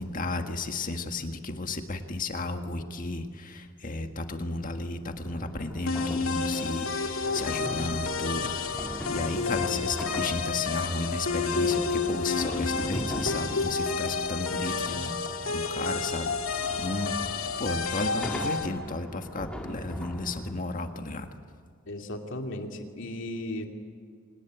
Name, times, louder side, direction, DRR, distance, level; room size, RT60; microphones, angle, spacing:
voice 1, 0.0-15.2 15.5-16.4 16.8-17.2 17.6-21.3, left 2 dB, 40° left, 6 dB, 1.7 m, -33 dB
sound 1, 5.3-20.5, equal, 5° left, 2.1 m, -40 dB
sound 2, 5.9-18.7, left 4 dB, 80° left, 2.2 m, -30 dB
voice 2, 21.9-23.7, left 1 dB, 65° left, 3 dB, 2.7 m, -36 dB
26.0 x 19.5 x 9.1 m, 2.1 s
head